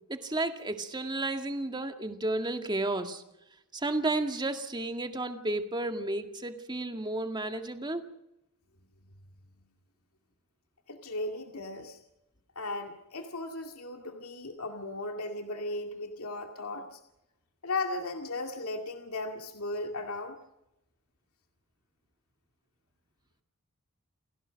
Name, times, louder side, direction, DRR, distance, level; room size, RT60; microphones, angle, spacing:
voice 1, 0.1-3.2 3.7-8.1, right 2 dB, 20° right, 6 dB, 2.0 m, -32 dB
voice 2, 10.9-12.0 12.6-17.0 17.6-20.4, left 2 dB, 70° left, 4 dB, 2.3 m, -36 dB
29.5 x 17.0 x 6.4 m, 0.88 s
head